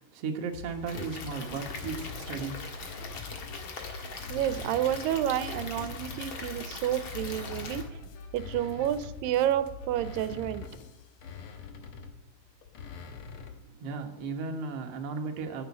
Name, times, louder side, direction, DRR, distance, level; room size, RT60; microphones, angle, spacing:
voice 1, 0.0-3.1 13.8-15.6, right 4 dB, 60° right, 4 dB, 1.9 m, -36 dB
sound 1, 0.5-11.1, left 3 dB, 85° left, 2.8 m, -45 dB
Stream / Liquid, 0.9-7.8, left 4 dB, 50° left, 1.8 m, -42 dB
sound 2, 1.4-3.7 4.1-6.5 7.0-13.7, left 5 dB, 70° left, 1.3 m, -45 dB
voice 2, 4.3-7.8 8.3-10.6, right 12 dB, 90° right, 12 dB, 2.4 m, -29 dB
10.5 x 8.1 x 8.4 m, 0.92 s
omnidirectional pair, 3.9 m